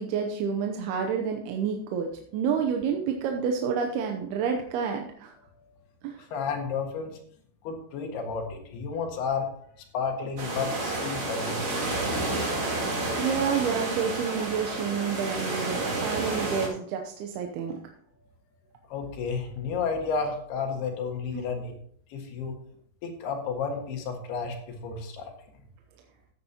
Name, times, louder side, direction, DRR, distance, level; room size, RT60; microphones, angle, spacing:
voice 1, 0.0-5.3 6.0-6.2 13.2-17.8 21.3-21.4, right 6 dB, 75° right, 3 dB, 2.6 m, -29 dB
voice 2, 6.2-7.2 7.6-9.5 9.9-12.3 18.9-21.8 22.1-22.6 23.0-25.3, left 5 dB, 70° left, 2 dB, 3.5 m, -32 dB
sound 1, 10.4-16.7, right 2 dB, 35° right, 2.6 m, -30 dB
14.5 x 9.2 x 2.9 m, 0.64 s
omnidirectional pair, 5.0 m